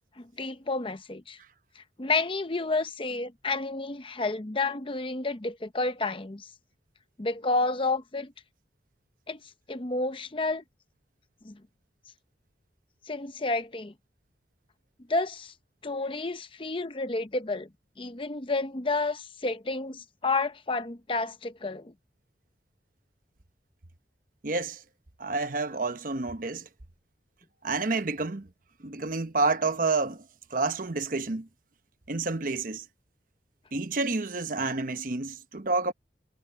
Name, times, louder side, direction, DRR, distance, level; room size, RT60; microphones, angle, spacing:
voice 1, 0.2-1.4 1.8-6.5 7.2-8.3 9.3-9.4 9.7-10.6 11.4-11.6 13.1-13.9 15.1-15.5 15.8-17.7 18.0-21.9, left 3 dB, 30° left, 0.8 m, -30 dB
voice 2, 24.4-24.8 25.2-26.7 27.6-28.5 28.8-30.2 30.5-31.5 32.1-32.8 33.7-35.9, right 3 dB, 50° right, 1.0 m, -29 dB
head